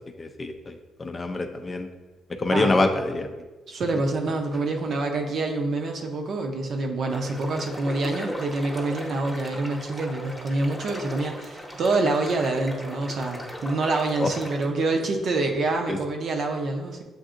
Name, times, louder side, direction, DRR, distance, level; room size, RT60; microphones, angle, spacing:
voice 1, 0.2-1.9 2.4-3.3 14.2-14.3 15.9-16.0, left 2 dB, 30° left, 6 dB, 0.4 m, -25 dB
voice 2, 3.7-17.0, right 2 dB, 60° right, 3 dB, 0.6 m, -26 dB
sound 1, 7.1-14.7, equal, 5° left, 0.9 m, -38 dB
7.6 x 2.6 x 2.5 m, 1.2 s
cardioid pair, 90°, 0 cm